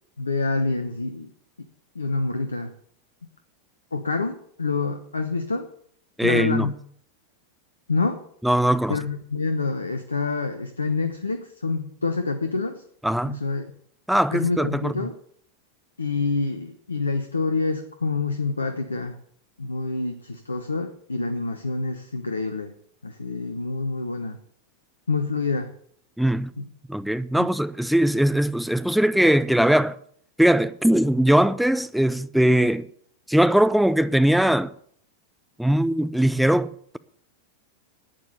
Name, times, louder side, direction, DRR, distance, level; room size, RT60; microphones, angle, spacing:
voice 1, 0.2-1.3 1.9-2.7 3.9-5.7 6.2-6.8 7.9-8.2 8.9-12.8 13.3-13.7 14.3-15.1 16.0-19.2 19.6-22.7 23.0-24.4 25.1-25.7 26.6-26.7 27.4-27.5, left 3 dB, 80° left, 0.9 m, -27 dB
voice 2, 6.2-6.7 8.4-9.0 13.0-13.4 14.1-15.1 26.2-26.5 26.9-30.0 30.4-32.9 33.3-34.7 35.6-37.0, right 1 dB, ahead, 0.6 m, -20 dB
11.5 x 9.4 x 6.7 m
figure-of-eight pair, 90°, 0 cm